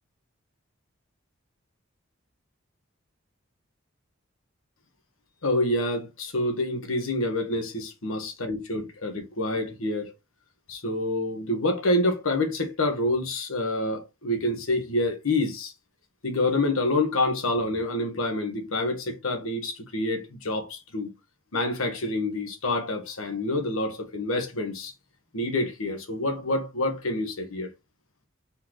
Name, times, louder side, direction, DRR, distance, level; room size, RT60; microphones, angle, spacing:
voice 1, 5.4-10.1 10.7-15.7 16.2-21.1 21.5-24.9 25.3-27.7, left 2 dB, 85° left, 1.3 m, -27 dB
4.2 x 3.1 x 3.9 m
head